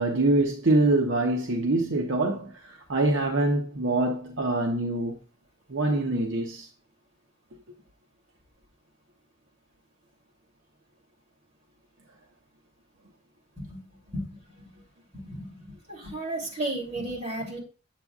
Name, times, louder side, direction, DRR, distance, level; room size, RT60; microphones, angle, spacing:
voice 1, 0.0-5.2 5.7-6.7, right 2 dB, 70° right, 0.9 m, -25 dB
voice 2, 14.1-14.7 15.2-17.6, right 1 dB, 35° right, 2.9 m, -34 dB
8.1 x 7.5 x 2.4 m
head